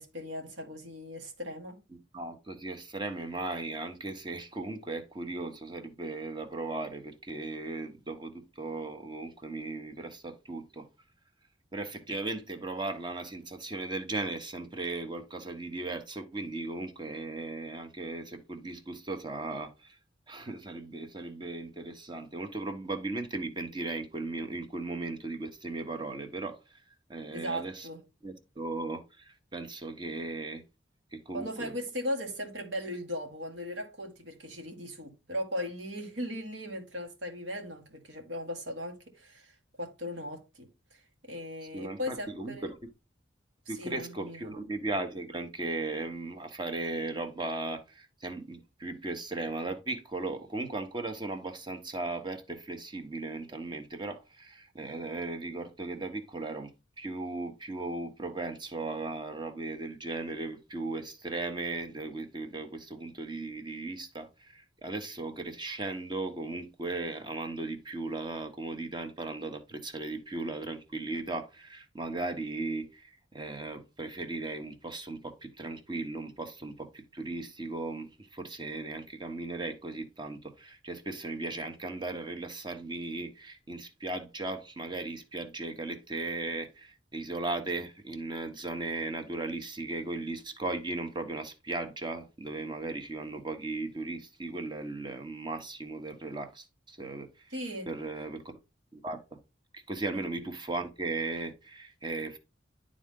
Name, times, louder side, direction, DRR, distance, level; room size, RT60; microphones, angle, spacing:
voice 1, 0.0-1.8 27.3-28.0 31.3-42.7 43.8-44.5 97.5-97.9 100.1-100.2, equal, 70° right, 1.8 m, -38 dB
voice 2, 2.1-10.9 11.7-20.0 20.3-26.8 27.1-27.9 28.2-30.6 31.1-31.7 41.7-42.9 43.7-56.7 57.0-97.5 97.9-98.5 98.9-99.4 99.7-102.4, right 2 dB, 25° right, 1.0 m, -37 dB
11.0 x 3.7 x 3.7 m
head